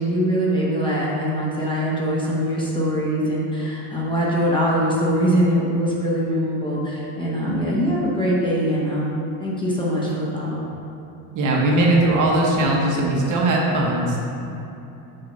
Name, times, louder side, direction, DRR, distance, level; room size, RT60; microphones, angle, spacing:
voice 1, 0.0-10.6, equal, 10° left, -6 dB, 0.9 m, -22 dB
voice 2, 11.3-14.2, right 2 dB, 45° right, -2 dB, 1.0 m, -19 dB
7.6 x 2.6 x 5.3 m, 2.8 s
cardioid pair, 140°, 43 cm